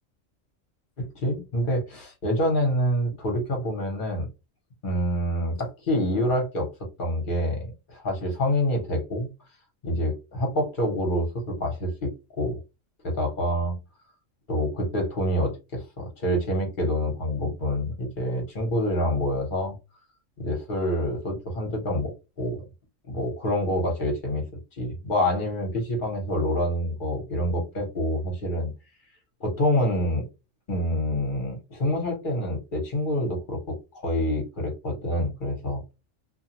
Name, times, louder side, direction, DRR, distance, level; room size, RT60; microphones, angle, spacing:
voice 1, 1.0-4.3 4.8-6.7 7.0-9.3 9.8-12.1 12.4-12.6 13.0-13.8 14.5-19.7 20.4-22.7 23.0-24.5 24.8-28.7 29.4-30.3 30.7-35.9, left 1 dB, 45° left, 2 dB, 1.1 m, -27 dB
2.6 x 2.3 x 2.8 m, 0.26 s
omnidirectional pair, 1.3 m